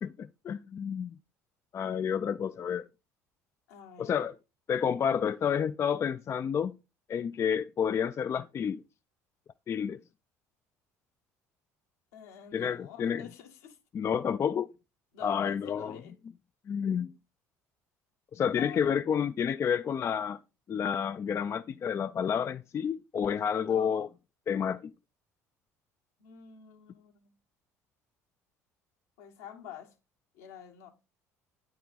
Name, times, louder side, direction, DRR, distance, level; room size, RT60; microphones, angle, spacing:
voice 1, 0.0-1.1 1.7-2.8 4.0-4.4 4.7-6.7 7.1-8.8 9.7-10.0 12.5-13.3 13.9-14.7 15.2-16.0 16.7-17.1 18.3-20.4 20.7-24.1 24.5-24.9, left 7 dB, 35° left, 0.4 m, -30 dB
voice 2, 3.7-4.1 12.1-13.8 15.1-16.2 18.6-18.9 23.5-24.1 26.2-27.3 29.2-29.9 30.3-30.9, left 8 dB, 75° left, 1.2 m, -48 dB
9.1 x 4.7 x 4.0 m
hypercardioid pair, 60°, 8 cm